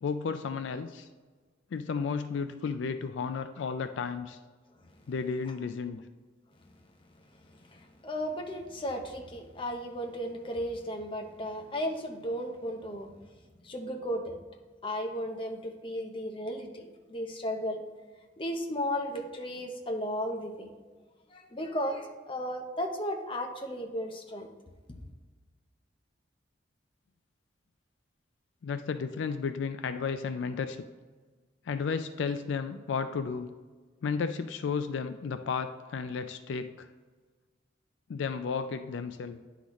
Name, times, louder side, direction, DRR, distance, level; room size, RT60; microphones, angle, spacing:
voice 1, 0.0-1.1 1.7-4.4 5.1-6.0 28.6-30.8 31.7-33.5 34.0-36.9 38.1-39.4, left 5 dB, 75° left, 9 dB, 0.3 m, -33 dB
voice 2, 7.3-13.2 13.6-14.4 14.8-17.8 18.4-20.7 21.3-24.5, equal, 30° left, 3 dB, 0.7 m, -35 dB
9.8 x 4.0 x 3.0 m, 1.4 s
head